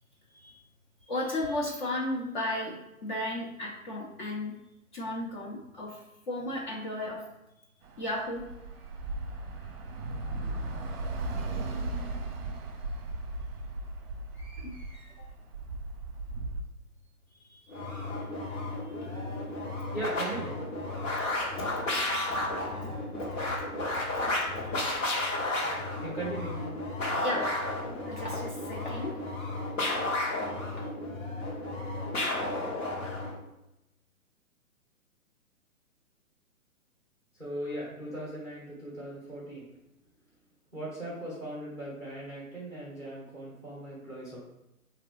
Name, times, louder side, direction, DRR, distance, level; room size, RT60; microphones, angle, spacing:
voice 1, 1.0-2.7 3.0-4.5 4.9-7.2 8.0-8.4 14.3-15.3 17.3-18.0 19.0-19.2 21.5-21.9 24.6-24.7 25.4-25.5 27.2-27.6 28.0-29.5 30.8-30.9, left 1 dB, 35° left, -3 dB, 0.8 m, -35 dB
Bus / Traffic noise roadway noise, 7.8-16.6, right 2 dB, 40° right, 0.7 m, -37 dB
sound 1, 17.7-33.4, left 2 dB, 60° left, 1.5 m, -33 dB
voice 2, 19.9-20.6 25.6-26.7 37.3-39.7 40.7-44.4, right 1 dB, 5° left, -7 dB, 0.9 m, -39 dB
3.7 x 3.0 x 4.8 m, 0.91 s
figure-of-eight pair, 130°, 43 cm